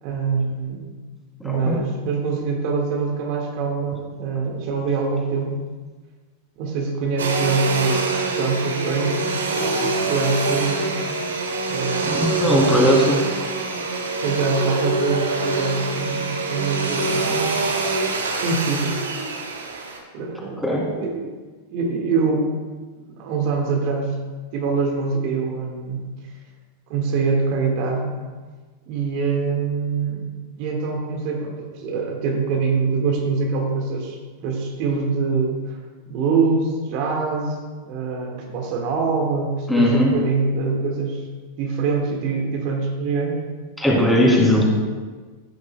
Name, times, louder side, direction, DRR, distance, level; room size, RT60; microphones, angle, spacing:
voice 1, 0.0-0.8 1.4-5.6 6.6-10.9 11.7-12.0 12.4-12.9 14.2-17.6 18.4-19.0 20.1-21.4 21.7-22.5 23.2-24.2 24.5-26.0 26.9-28.2 28.9-30.3 30.6-35.8 36.1-37.6 37.8-41.3 41.5-43.4 44.4-44.6, right 4 dB, 45° right, 0 dB, 1.6 m, -24 dB
Domestic sounds home sounds, 7.2-20.0, right 3 dB, 65° right, 1.4 m, -25 dB
voice 2, 12.0-13.2 20.6-20.8 39.7-40.1 43.8-44.6, left 1 dB, 5° left, -3 dB, 2.9 m, -18 dB
14.5 x 9.5 x 2.2 m, 1.4 s
figure-of-eight pair, 90°, 0 cm